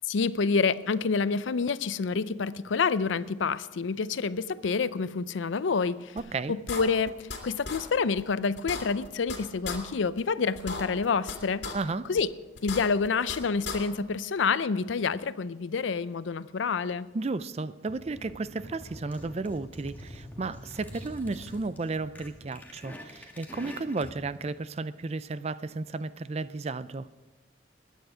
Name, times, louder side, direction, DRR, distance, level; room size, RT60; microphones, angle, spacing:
voice 1, 0.1-6.2 6.5-11.7 12.1-12.3 12.6-17.1, left 5 dB, 90° left, 16 dB, 0.5 m, -28 dB
sound 1, 6.2-6.3 6.7-7.4 7.6-7.8 8.2-8.3 8.6-9.4 9.6-9.8 10.2-10.3 10.6-11.3 11.6-11.7 12.2-12.3 12.6-13.4 13.6-13.8, left 4 dB, 65° left, 2.5 m, -35 dB
voice 2, 11.7-12.1 17.1-27.1, right 3 dB, 35° right, 15 dB, 0.4 m, -33 dB
sound 2, 17.9-24.3, left 1 dB, 10° left, 1.6 m, -46 dB
20.5 x 9.3 x 4.9 m, 1.2 s
head